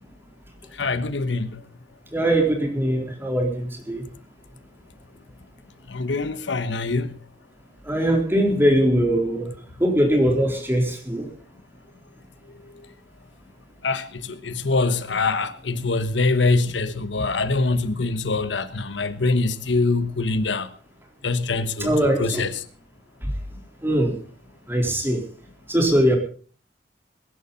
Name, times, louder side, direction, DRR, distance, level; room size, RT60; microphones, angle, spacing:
voice 1, 0.7-1.6 5.9-7.2 12.5-12.9 13.8-20.7 21.2-22.6, left 3 dB, 85° left, 1.2 m, -24 dB
voice 2, 2.1-4.0 7.8-9.5 9.8-11.3 21.8-22.4 23.2-23.3 23.8-24.2 24.7-25.2 25.7-26.2, equal, 15° right, 3.9 m, -21 dB
21.5 x 11.5 x 4.1 m
head